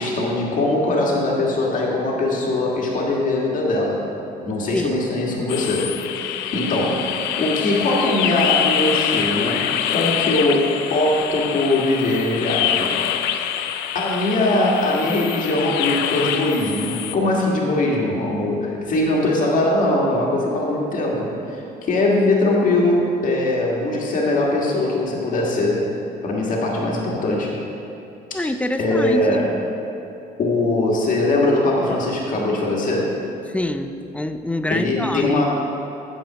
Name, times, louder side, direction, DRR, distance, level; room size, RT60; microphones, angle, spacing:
voice 1, 0.0-4.1 4.4-6.0 6.5-7.1 7.4-12.9 13.9-25.9 26.2-27.6 28.4-28.5 28.8-29.6 30.4-33.2 34.7-35.4, left 2 dB, 50° left, -3 dB, 1.8 m, -21 dB
sound 1, 5.5-17.2, left 10 dB, 90° left, 0.5 m, -25 dB
voice 2, 28.3-29.5 33.5-35.4, left 1 dB, 10° left, 9 dB, 0.4 m, -25 dB
8.9 x 7.2 x 4.9 m, 2.8 s
cardioid pair, 110°, 17 cm